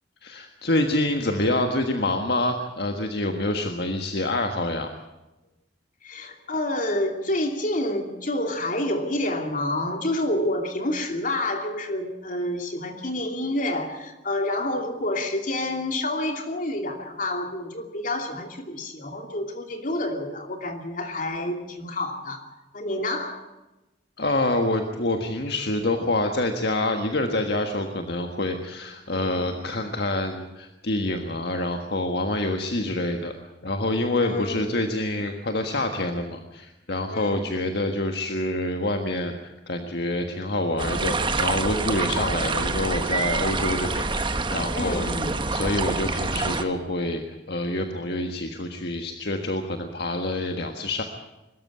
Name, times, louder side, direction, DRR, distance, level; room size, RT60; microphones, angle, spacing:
voice 1, 0.2-4.9 24.2-45.1 45.5-51.0, left 1 dB, 65° left, 5 dB, 1.6 m, -27 dB
voice 2, 6.0-22.4 22.7-23.5 29.1-29.5 34.2-34.7 37.1-37.4 44.7-45.4, left 1 dB, 45° left, 4 dB, 2.8 m, -28 dB
sound 1, 40.8-46.6, right 3 dB, 30° right, 1.2 m, -26 dB
22.5 x 13.5 x 9.7 m, 1.0 s
head